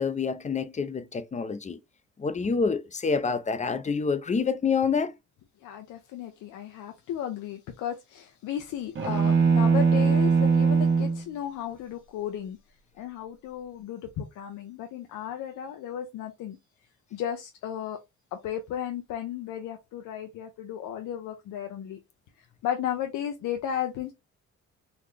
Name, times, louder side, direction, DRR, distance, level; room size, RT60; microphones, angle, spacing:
voice 1, 0.0-1.8 2.2-5.1, left 5 dB, 25° left, 0.5 m, -27 dB
voice 2, 5.6-12.6 13.0-16.6 17.1-18.0 18.3-22.0 22.6-24.1, left 10 dB, 85° left, 0.7 m, -34 dB
sound 1, 9.0-11.2, right 5 dB, 40° right, 1.1 m, -21 dB
3.9 x 2.2 x 3.3 m
cardioid pair, 90°, 30 cm